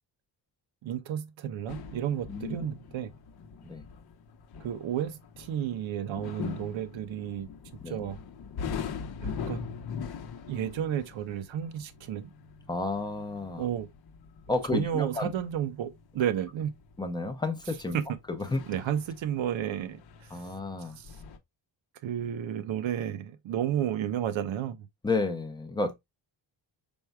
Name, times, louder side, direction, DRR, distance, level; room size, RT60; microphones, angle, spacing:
voice 1, 0.8-3.1 4.6-7.5 7.9-8.2 9.2-9.7 10.5-12.3 13.5-13.9 14.7-16.7 17.9-18.0 18.7-20.4 21.0-21.1 22.0-24.9, right 10 dB, 80° right, 0.9 m, -32 dB
sound 1, 1.7-21.4, left 6 dB, 55° left, 0.8 m, -42 dB
voice 2, 12.7-13.6 14.5-15.3 17.0-18.0 18.4-18.6 20.3-21.0 25.0-25.9, left 3 dB, 10° left, 0.6 m, -31 dB
5.3 x 4.5 x 2.2 m
wide cardioid pair, 175°, 46 cm